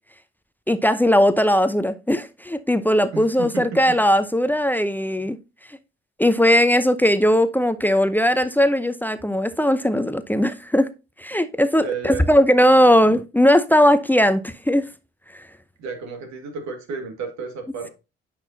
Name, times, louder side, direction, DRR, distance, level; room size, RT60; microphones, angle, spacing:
voice 1, 0.7-5.4 6.2-10.9 11.2-14.9 15.3-15.4, equal, 5° left, 0.7 m, -18 dB
voice 2, 3.1-4.0 11.8-12.3 15.8-17.9, right 5 dB, 60° right, 2.0 m, -32 dB
9.8 x 6.0 x 2.7 m
figure-of-eight pair, 45°, 31 cm